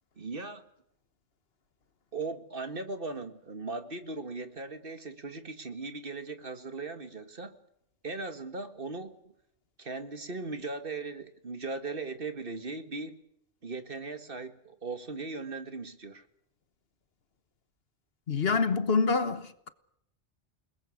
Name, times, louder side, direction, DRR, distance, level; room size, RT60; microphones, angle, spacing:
voice 1, 0.2-0.6 2.1-7.5 8.0-9.1 9.8-13.2 13.6-16.3, right 3 dB, 50° right, 2.0 m, -38 dB
voice 2, 18.3-19.7, left 4 dB, 60° left, 1.4 m, -26 dB
29.0 x 20.0 x 6.5 m
omnidirectional pair, 1.2 m